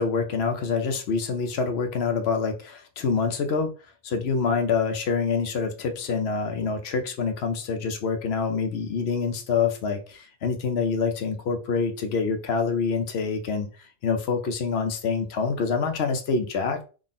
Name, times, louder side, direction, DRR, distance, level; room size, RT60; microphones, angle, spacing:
voice 1, 0.0-3.7 4.0-13.7 14.0-16.8, left 5 dB, 60° left, 6 dB, 0.8 m, -26 dB
3.6 x 2.1 x 3.8 m, 0.35 s
omnidirectional pair, 1.3 m